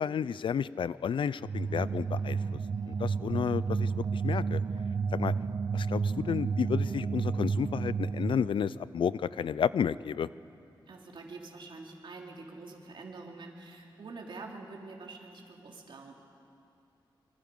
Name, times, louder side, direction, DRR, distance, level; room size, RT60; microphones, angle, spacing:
voice 1, 0.0-2.4 2.9-4.6 5.1-5.3 5.7-10.3, left 7 dB, 75° left, 18 dB, 0.5 m, -31 dB
sound 1, 1.4-8.8, right 5 dB, 50° right, 0.5 m, -31 dB
voice 2, 10.9-16.1, right 3 dB, 65° right, 0 dB, 2.9 m, -46 dB
25.5 x 25.0 x 5.4 m, 2.6 s
wide cardioid pair, 110°, 9 cm